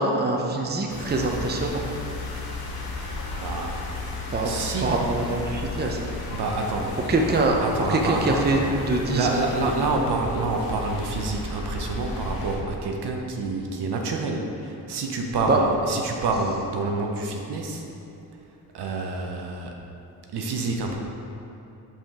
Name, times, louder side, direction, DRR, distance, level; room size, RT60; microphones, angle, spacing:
voice 1, 0.0-1.8 4.3-4.5 4.8-6.0 7.1-7.6 7.9-9.7 15.5-15.6, right 2 dB, 25° right, 1 dB, 0.7 m, -24 dB
sound 1, 0.9-12.6, left 2 dB, 55° left, 1.2 m, -34 dB
voice 2, 3.4-3.8 4.4-4.9 6.3-7.0 7.3-8.7 9.1-17.8 18.7-19.8 20.3-20.9, right 3 dB, 65° right, 1 dB, 0.8 m, -28 dB
5.4 x 5.1 x 3.6 m, 3.0 s
cardioid pair, 65°, 42 cm